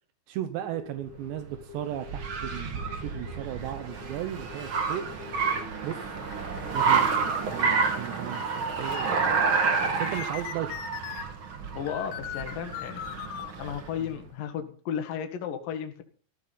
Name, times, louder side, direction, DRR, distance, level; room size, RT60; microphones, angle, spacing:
voice 1, 0.3-5.1 5.8-6.1 6.7-9.4 10.0-10.8 14.0-14.1, right 12 dB, 80° right, 9 dB, 3.2 m, -36 dB
sound 1, 0.6-11.3 11.9-13.5, left 11 dB, 90° left, 3.5 m, -43 dB
Car, 1.1-14.0, right 5 dB, 45° right, 1.7 m, -29 dB
voice 2, 11.8-13.0 13.6-16.0, left 8 dB, 60° left, 5 dB, 2.9 m, -34 dB
14.5 x 14.0 x 4.1 m, 0.41 s
omnidirectional pair, 5.1 m